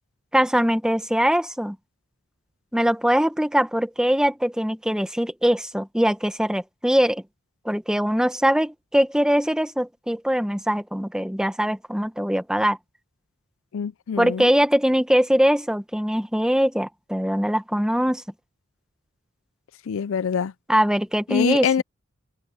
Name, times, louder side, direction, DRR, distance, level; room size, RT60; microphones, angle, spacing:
voice 1, 0.3-1.8 2.7-7.2 7.6-12.8 14.2-18.2 20.7-21.7, equal, 5° right, 1.2 m, -22 dB
voice 2, 13.7-14.5 19.9-20.5 21.3-21.8, left 7 dB, 75° left, 0.4 m, -24 dB
open air
head